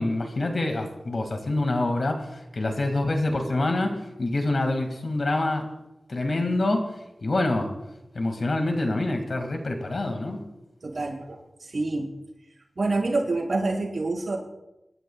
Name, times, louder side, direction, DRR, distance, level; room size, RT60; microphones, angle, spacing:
voice 1, 0.0-5.7 6.1-6.9 7.2-7.7 8.1-10.4, left 2 dB, 60° left, 4 dB, 2.1 m, -26 dB
voice 2, 10.8-12.1 12.8-14.4, right 2 dB, 55° right, -4 dB, 5.5 m, -27 dB
26.5 x 12.5 x 2.4 m, 0.93 s
wide cardioid pair, 95°, 0 cm